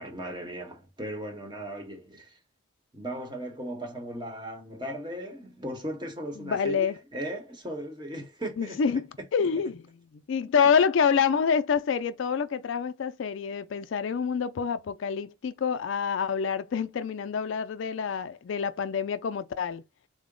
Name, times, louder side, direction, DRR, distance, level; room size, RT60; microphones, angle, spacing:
voice 1, 0.0-2.4 2.9-8.8 10.4-10.5, equal, 20° right, 0.9 m, -37 dB
voice 2, 6.4-7.0 8.6-9.1 9.3-9.8 10.3-19.8, left 6 dB, 70° left, 0.4 m, -27 dB
3.8 x 2.1 x 3.7 m
head